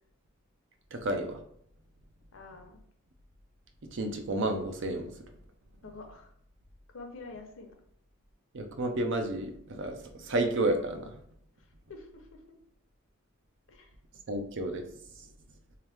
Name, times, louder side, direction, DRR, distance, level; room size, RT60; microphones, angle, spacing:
voice 1, 0.9-1.4 3.9-5.1 8.5-11.1 14.3-14.8, right 2 dB, 65° right, 5 dB, 0.6 m, -31 dB
voice 2, 2.3-2.8 5.8-6.3 6.9-7.7 11.9-12.6 13.7-13.9, left 3 dB, 70° left, 4 dB, 0.7 m, -47 dB
3.5 x 2.9 x 3.4 m, 0.66 s
head